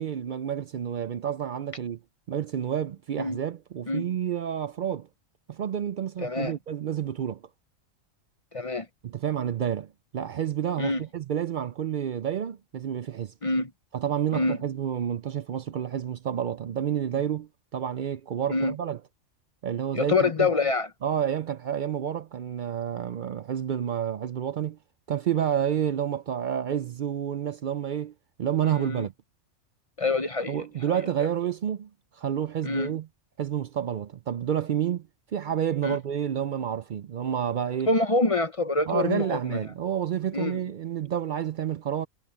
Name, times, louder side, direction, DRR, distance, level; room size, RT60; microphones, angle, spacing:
voice 1, 0.0-2.0 2.3-5.1 5.5-7.4 9.0-13.3 13.9-19.0 19.6-20.5 21.0-24.8 25.1-28.1 28.4-29.1 30.5-31.9 32.2-33.1 33.4-35.0 35.3-37.9 38.9-42.1, right 9 dB, 70° right, 0.4 m, -29 dB
voice 2, 6.2-6.5 8.5-8.9 10.8-11.0 13.4-13.7 14.3-14.6 18.5-18.7 19.9-20.9 28.6-29.1 30.0-31.3 32.6-32.9 35.8-36.0 37.9-39.6 40.3-40.6, left 3 dB, 35° left, 0.6 m, -26 dB
omnidirectional pair, 1.4 m